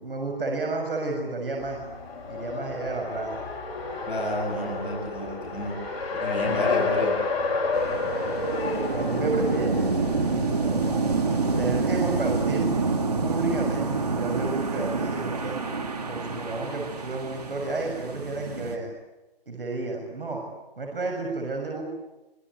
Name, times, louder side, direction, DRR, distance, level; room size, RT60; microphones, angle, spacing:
voice 1, 0.0-1.8 2.3-3.3 7.7-8.5 8.9-9.9 10.5-10.8 11.5-12.7 13.2-15.6 16.1-18.9 19.5-20.4 20.8-21.8, right 3 dB, 65° right, 2 dB, 6.8 m, -31 dB
Race car auto racing, 1.6-11.6, left 3 dB, 35° left, 6.7 m, -31 dB
voice 2, 4.1-5.8 6.2-7.2, left 1 dB, ahead, -12 dB, 7.7 m, -30 dB
sound 1, 7.7-18.8, right 4 dB, 40° right, 2.7 m, -27 dB
25.5 x 21.5 x 9.6 m, 1.0 s
hypercardioid pair, 175°, 30 cm